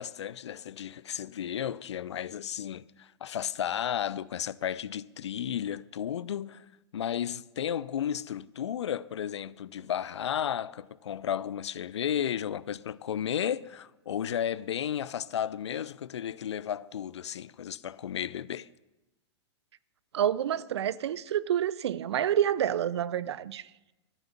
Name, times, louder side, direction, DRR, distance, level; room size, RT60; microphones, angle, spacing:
voice 1, 0.0-6.6 6.9-18.7, left 9 dB, 70° left, 0.5 m, -33 dB
voice 2, 20.1-23.7, right 10 dB, 65° right, 0.6 m, -28 dB
13.0 x 7.0 x 8.3 m
figure-of-eight pair, 100°, 15 cm